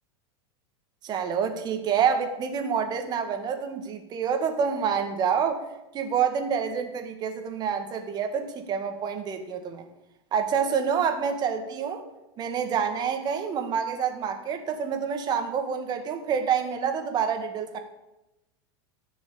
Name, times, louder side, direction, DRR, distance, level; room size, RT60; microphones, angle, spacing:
voice 1, 1.0-5.6 5.9-9.8 10.3-12.0 12.4-17.8, right 7 dB, 30° right, 6 dB, 2.0 m, -27 dB
15.0 x 6.2 x 8.8 m, 0.94 s
supercardioid pair, 145°, 14 cm